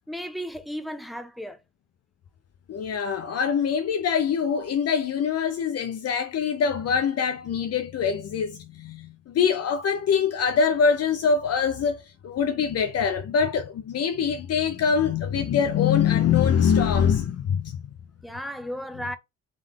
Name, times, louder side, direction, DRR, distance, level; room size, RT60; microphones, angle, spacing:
voice 1, 0.1-1.6 18.2-19.2, equal, ahead, 0.7 m, -34 dB
voice 2, 2.7-17.8, left 7 dB, 55° left, 0.6 m, -24 dB
3.7 x 3.2 x 3.6 m
cardioid pair, 90°, 30 cm